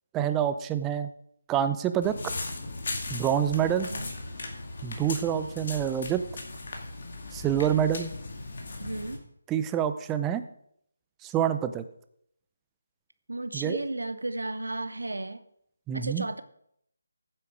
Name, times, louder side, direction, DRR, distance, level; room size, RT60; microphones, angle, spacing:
voice 1, 0.1-1.1 1.5-2.2 3.1-3.9 4.8-6.2 7.3-8.1 9.5-10.4 11.2-11.9 13.5-13.8 15.9-16.2, right 9 dB, 10° right, 10 dB, 0.6 m, -27 dB
sound 1, 2.0-9.2, left 2 dB, 50° left, 2.4 m, -37 dB
voice 2, 3.7-4.1 8.8-9.2 13.3-15.4 15.9-16.4, right 2 dB, 75° right, 11 dB, 0.9 m, -34 dB
15.0 x 7.7 x 5.0 m, 0.71 s
figure-of-eight pair, 155°, 0 cm